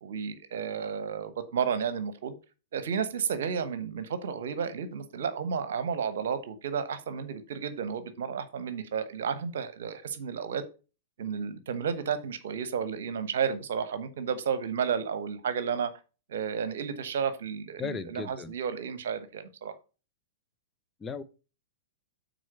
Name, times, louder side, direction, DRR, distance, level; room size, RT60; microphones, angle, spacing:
voice 1, 0.0-2.3 2.7-10.6 11.2-15.9 16.3-19.7, right 7 dB, 65° right, 1.1 m, -32 dB
voice 2, 17.8-18.5 21.0-21.2, left 5 dB, 15° left, 0.7 m, -36 dB
6.3 x 4.3 x 5.8 m
figure-of-eight pair, 105°, 0 cm